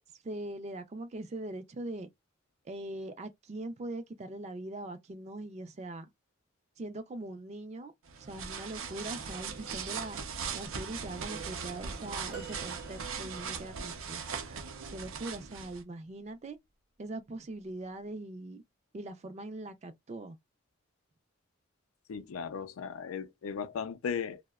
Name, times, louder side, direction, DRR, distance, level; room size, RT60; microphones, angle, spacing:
voice 1, 0.2-2.1 2.6-6.1 6.8-7.9 8.2-10.2 10.5-14.6 14.9-16.6 17.0-18.6 18.9-20.4, right 2 dB, 30° right, 0.4 m, -41 dB
sound 1, 8.1-15.8, right 6 dB, 85° right, 0.6 m, -39 dB
sound 2, 12.3-13.7 16.1-16.3 17.6-17.7, right 7 dB, 55° right, 0.9 m, -49 dB
voice 2, 22.1-24.4, left 6 dB, 90° left, 0.4 m, -36 dB
2.7 x 2.1 x 2.3 m
head